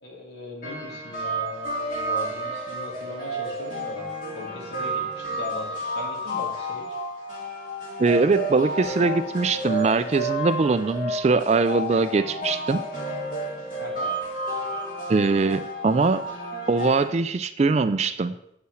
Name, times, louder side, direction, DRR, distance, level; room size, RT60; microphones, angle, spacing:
voice 1, 0.0-4.1 4.3-7.0 13.8-14.1, left 1 dB, 65° left, -1 dB, 2.4 m, -38 dB
sound 1, 0.6-17.0, right 1 dB, 45° left, 2.8 m, -31 dB
voice 2, 8.0-12.8 15.1-16.3 16.7-18.3, right 4 dB, 35° right, 12 dB, 0.3 m, -22 dB
7.7 x 5.6 x 6.3 m, 0.76 s
head